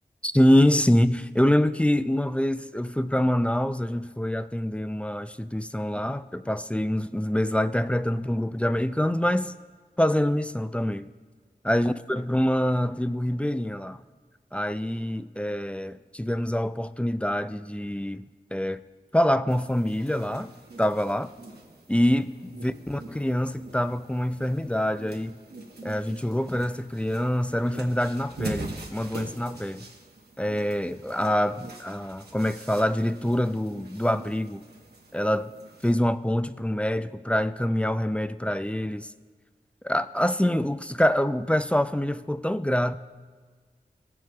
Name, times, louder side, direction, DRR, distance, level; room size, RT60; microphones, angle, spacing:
voice 1, 0.2-9.5 10.0-11.1 11.6-14.0 14.5-18.2 18.5-18.8 19.1-20.5 20.8-21.3 21.9-22.4 22.6-25.3 25.8-29.9 30.4-34.6 35.1-35.5 35.8-39.1 39.8-43.0, left 1 dB, 5° left, 0.3 m, -25 dB
sound 1, 19.5-35.9, right 2 dB, 90° right, 1.0 m, -43 dB
17.5 x 7.6 x 2.2 m
wide cardioid pair, 55°, 16 cm